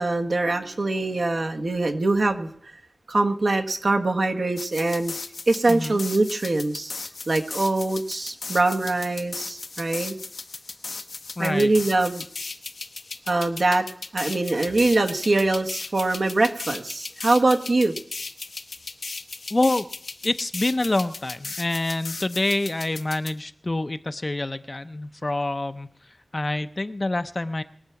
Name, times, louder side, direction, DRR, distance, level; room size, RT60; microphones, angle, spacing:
voice 1, 0.0-2.5 3.1-5.1 5.5-6.9 7.3-10.2 11.4-12.2 13.3-13.9 14.1-17.9, right 2 dB, 60° right, 5 dB, 1.3 m, -23 dB
sound 1, 4.6-23.3, left 3 dB, 80° left, 1.0 m, -37 dB
voice 2, 5.7-6.0 11.4-11.7 19.5-19.9 20.2-25.9 26.3-27.6, left 2 dB, 35° left, 11 dB, 0.6 m, -26 dB
21.0 x 7.4 x 5.9 m, 0.65 s
wide cardioid pair, 80°, 0 cm